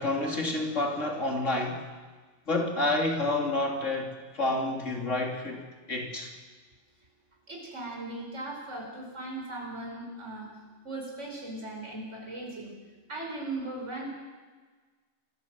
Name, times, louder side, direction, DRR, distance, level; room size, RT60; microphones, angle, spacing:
voice 1, 0.0-1.9 2.5-5.6 5.9-6.3, left 2 dB, 80° left, 2 dB, 3.4 m, -29 dB
voice 2, 7.5-10.5 10.8-12.8 13.1-14.1, right 2 dB, 70° right, -1 dB, 5.2 m, -38 dB
27.0 x 16.5 x 7.7 m, 1.4 s
omnidirectional pair, 1.3 m